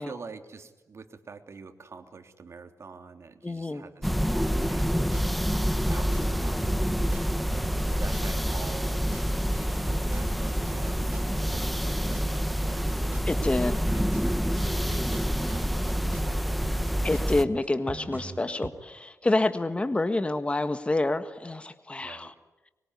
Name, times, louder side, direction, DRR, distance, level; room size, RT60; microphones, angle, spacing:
voice 1, 0.0-5.0 5.3-7.6 7.9-9.1 9.5-13.0 13.3-13.4 13.9-16.5 18.2-18.6 22.0-22.3, right 4 dB, 55° right, 6 dB, 3.0 m, -46 dB
voice 2, 3.4-3.8 13.3-13.7 17.0-22.3, left 2 dB, 20° left, 10 dB, 1.5 m, -27 dB
sound 1, 4.0-17.4, equal, ahead, 1.1 m, -27 dB
sound 2, 4.6-16.3 16.6-18.7, right 3 dB, 30° right, 4.4 m, -40 dB
25.0 x 23.0 x 9.7 m, 1.1 s
cardioid pair, 90°, 6 cm